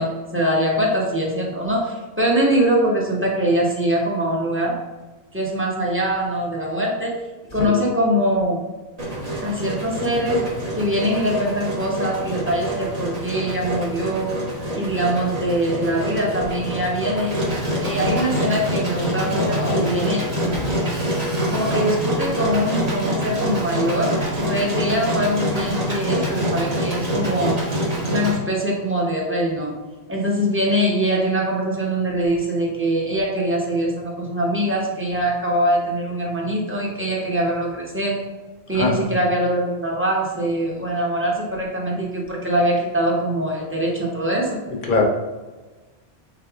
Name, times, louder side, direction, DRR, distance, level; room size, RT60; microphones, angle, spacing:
voice 1, 0.0-4.8 5.3-7.2 7.5-8.6 9.4-14.5 14.7-17.5 17.8-20.7 21.5-27.6 28.1-29.8 30.1-38.2 38.7-44.6, equal, 15° right, -3 dB, 0.8 m, -23 dB
Engine, 9.0-28.4, equal, 40° right, 1.1 m, -26 dB
voice 2, 19.4-19.9 20.5-20.7 38.7-38.9 44.9-45.0, left 4 dB, 55° left, 0 dB, 0.9 m, -22 dB
4.0 x 3.4 x 3.5 m, 1.2 s
omnidirectional pair, 1.1 m